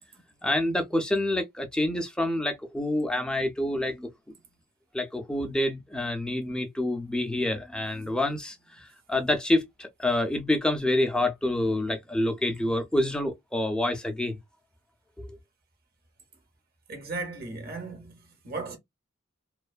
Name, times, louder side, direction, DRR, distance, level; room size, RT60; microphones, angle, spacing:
voice 1, 0.4-4.1 4.9-14.4 15.2-15.3, left 1 dB, 5° left, 0.4 m, -27 dB
voice 2, 16.9-18.8, right 3 dB, 50° right, 0.8 m, -36 dB
2.5 x 2.2 x 2.3 m
head